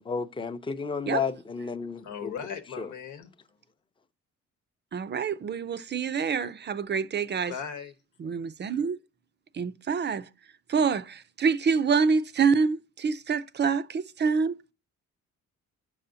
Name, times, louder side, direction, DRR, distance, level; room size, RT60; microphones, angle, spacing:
voice 1, 0.0-2.3 2.8-2.9, left 5 dB, 15° left, 0.5 m, -32 dB
voice 2, 2.0-3.3 7.5-7.9, left 7 dB, 85° left, 1.1 m, -37 dB
voice 3, 4.9-7.5 8.2-9.0 9.5-10.2 10.7-14.7, right 5 dB, 35° right, 0.5 m, -26 dB
7.6 x 5.6 x 2.6 m
cardioid pair, 110°, 30 cm